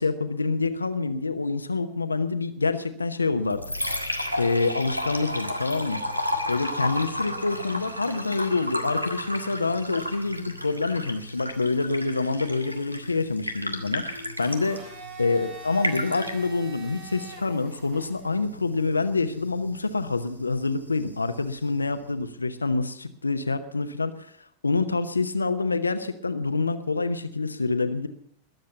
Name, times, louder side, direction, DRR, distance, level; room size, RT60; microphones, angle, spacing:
voice 1, 0.0-3.6 4.4-6.0 6.5-14.8 15.2-24.3 24.6-28.1, left 3 dB, 80° left, 9 dB, 0.9 m, -26 dB
Liquid, 3.3-22.3, left 1 dB, 90° right, 1.7 m, -34 dB
Domestic sounds home sounds, 14.4-18.4, right 3 dB, 45° right, 4.2 m, -44 dB
21.0 x 7.8 x 6.9 m, 0.67 s
figure-of-eight pair, 90°, 0 cm